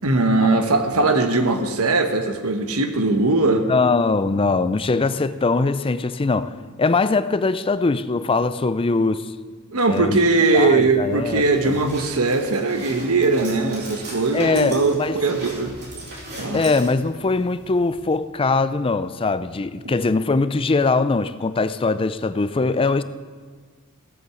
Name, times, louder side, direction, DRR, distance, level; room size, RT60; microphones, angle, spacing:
voice 1, 0.0-3.7 9.7-15.8 16.4-16.6, right 3 dB, 75° right, 1.2 m, -20 dB
voice 2, 3.7-6.5 6.8-9.3 9.9-10.2 10.5-11.8 14.3-15.2 16.5-23.0, left 3 dB, 25° left, 0.4 m, -21 dB
sound 1, 10.8-18.2, right 1 dB, 45° right, 3.9 m, -39 dB
16.0 x 7.9 x 7.0 m
head